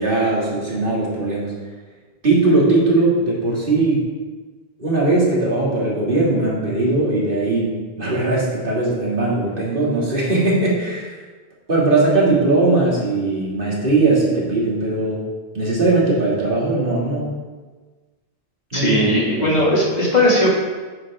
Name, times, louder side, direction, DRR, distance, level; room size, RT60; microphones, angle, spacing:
voice 1, 0.0-1.5 2.2-4.1 4.8-11.2 11.7-15.2 15.5-17.4 18.7-19.0 19.4-19.5, right 2 dB, 50° right, -5 dB, 2.9 m, -19 dB
voice 2, 18.7-20.5, left 1 dB, 40° left, -5 dB, 2.8 m, -17 dB
10.0 x 9.7 x 3.8 m, 1.3 s
omnidirectional pair, 1.1 m